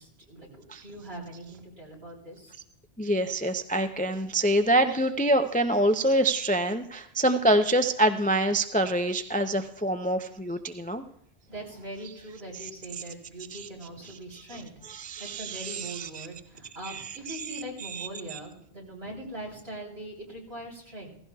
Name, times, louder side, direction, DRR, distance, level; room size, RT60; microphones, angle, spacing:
voice 1, 0.0-2.6 11.5-21.1, right 1 dB, 70° right, -3 dB, 3.8 m, -41 dB
voice 2, 3.0-11.0 12.6-12.7 13.5-13.7 14.3-14.4 14.9-16.3 16.8-17.4 17.8-18.4, right 1 dB, 15° left, 7 dB, 0.3 m, -26 dB
16.5 x 16.0 x 2.3 m, 0.73 s
omnidirectional pair, 1.1 m